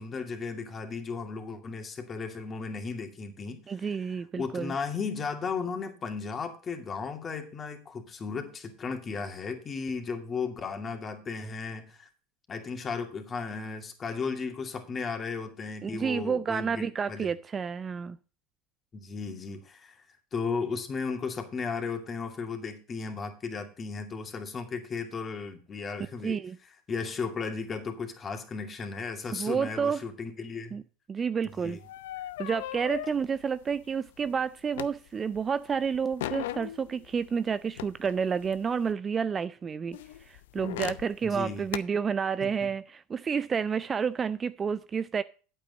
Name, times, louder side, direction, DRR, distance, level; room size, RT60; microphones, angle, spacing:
voice 1, 0.0-12.1 12.5-17.3 18.9-20.1 20.3-26.4 26.9-30.8 31.4-31.8 41.2-41.7 42.4-42.7, left 5 dB, 30° left, 2.4 m, -35 dB
voice 2, 3.7-4.7 15.8-18.2 26.2-26.6 29.3-30.0 30.7-30.8 31.1-31.8 32.4-45.2, right 6 dB, 25° right, 0.4 m, -30 dB
sound 1, 31.5-35.4 35.7-38.9 39.9-41.8, left 14 dB, 75° left, 0.5 m, -39 dB
9.0 x 7.9 x 5.3 m
hypercardioid pair, 95°, 0 cm